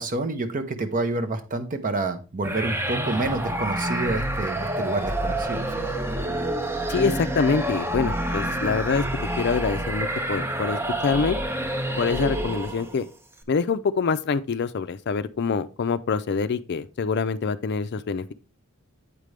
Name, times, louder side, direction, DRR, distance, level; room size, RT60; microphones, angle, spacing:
voice 1, 0.0-5.9, right 2 dB, 40° right, 0.8 m, -28 dB
sound 1, 2.4-13.0, right 1 dB, 10° right, 0.6 m, -28 dB
voice 2, 6.9-9.1 9.4-11.4 12.0-13.1 13.5-18.3, left 5 dB, 50° left, 0.4 m, -25 dB
8.3 x 5.1 x 3.3 m
head